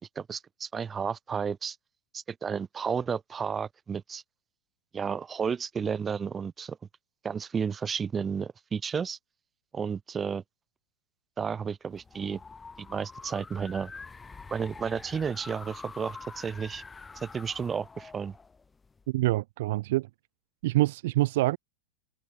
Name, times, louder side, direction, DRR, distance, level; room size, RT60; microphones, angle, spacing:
voice 1, 0.2-1.8 2.1-4.2 4.9-6.8 7.2-9.2 9.7-10.4 11.4-12.4 12.8-13.9 14.5-16.8 17.2-18.3, right 6 dB, 20° right, 2.1 m, -32 dB
sound 1, 11.9-19.1, left 4 dB, 15° left, 2.0 m, -46 dB
voice 2, 19.1-20.1 20.6-21.6, right 18 dB, 55° right, 0.5 m, -26 dB
figure-of-eight pair, 90°, 0 cm